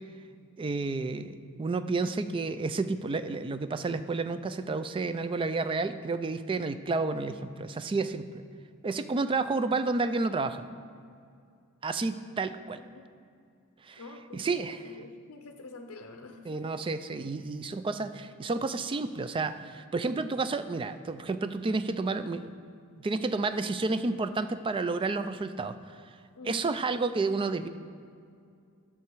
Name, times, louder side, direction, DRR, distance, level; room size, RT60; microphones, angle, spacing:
voice 1, 0.6-8.4 8.8-10.6 11.8-12.8 13.8-14.0 14.3-14.8 16.4-22.5 23.0-25.8 26.5-27.7, right 3 dB, 25° right, 11 dB, 0.3 m, -30 dB
voice 2, 12.7-13.1 14.0-14.5 14.8-16.7 26.3-26.6, left 3 dB, 70° left, 4 dB, 0.6 m, -46 dB
11.5 x 6.6 x 4.6 m, 2.3 s
head